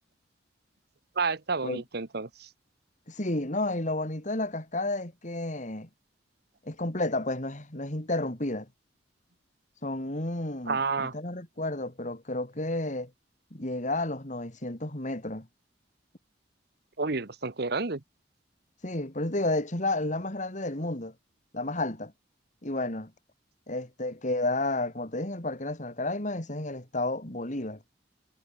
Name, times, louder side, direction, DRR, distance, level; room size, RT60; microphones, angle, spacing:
voice 1, 1.2-2.3 10.7-11.1 17.0-18.0, right 4 dB, 55° right, 1.2 m, -29 dB
voice 2, 3.1-5.9 6.6-8.7 9.8-13.1 13.5-15.5 18.8-21.1 21.5-22.1 22.6-23.1 23.7-27.8, left 2 dB, 40° left, 3.0 m, -31 dB
head